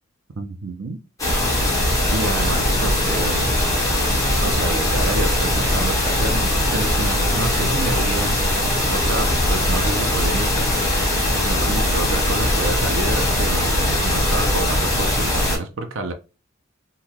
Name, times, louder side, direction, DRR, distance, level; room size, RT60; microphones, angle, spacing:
voice 1, 0.4-1.0 2.1-3.6 4.4-8.4 8.9-11.2 11.4-16.1, right 2 dB, 70° right, 0.5 m, -29 dB
sound 1, 1.2-15.6, left 1 dB, 15° left, 1.2 m, -20 dB
3.7 x 2.2 x 2.9 m
head